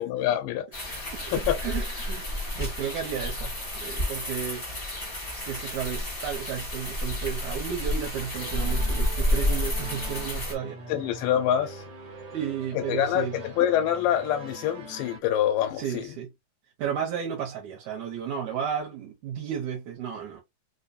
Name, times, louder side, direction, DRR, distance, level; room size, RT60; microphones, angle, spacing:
voice 1, 0.0-1.0 1.3-1.6 10.9-11.8 12.9-16.1, left 10 dB, 85° left, 2.2 m, -26 dB
sound 1, 0.7-10.5, left 1 dB, 45° left, 0.7 m, -30 dB
voice 2, 1.1-3.5 3.8-4.7 5.4-10.8 12.3-13.4 15.8-16.3 16.8-20.4, right 8 dB, 75° right, 2.0 m, -33 dB
sound 2, 8.3-15.2, right 1 dB, 45° right, 1.4 m, -43 dB
5.2 x 2.2 x 2.6 m
omnidirectional pair, 3.8 m